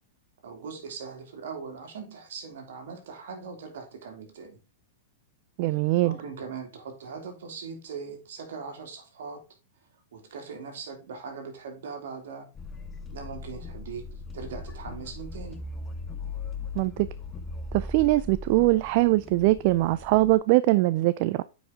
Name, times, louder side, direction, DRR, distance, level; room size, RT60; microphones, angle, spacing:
voice 1, 0.4-4.6 6.0-9.4 10.1-12.5 13.1-14.0 14.3-15.6, right 5 dB, 70° right, 2.4 m, -40 dB
voice 2, 5.6-6.2 16.8-17.1 17.7-21.4, right 19 dB, 50° right, 0.3 m, -22 dB
sound 1, 12.5-20.4, left 3 dB, 20° left, 1.1 m, -39 dB
8.7 x 5.0 x 3.6 m
hypercardioid pair, 120°, 0 cm